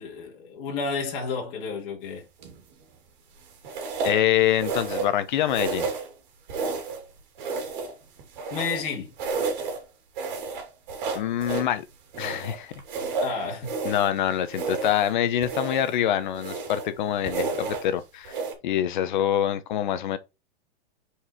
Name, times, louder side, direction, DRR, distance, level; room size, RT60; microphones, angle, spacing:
voice 1, 0.0-2.3 8.5-9.1 13.2-13.7, left 4 dB, 30° left, 2.5 m, -31 dB
sound 1, 2.4-2.7 3.6-4.2 4.6-5.2 5.5-6.1 6.5-7.0 7.4-8.9 9.2-9.8 10.2-11.7 12.1-14.1 14.5-15.1 15.4-15.9 16.3-16.9 17.2-17.9 18.2-18.5, right 4 dB, 50° right, 2.7 m, -31 dB
voice 2, 4.0-5.9 11.1-11.8 12.2-12.7 13.8-18.4 18.6-20.2, left 11 dB, 50° left, 1.0 m, -25 dB
6.2 x 4.9 x 4.7 m
supercardioid pair, 170°, 31 cm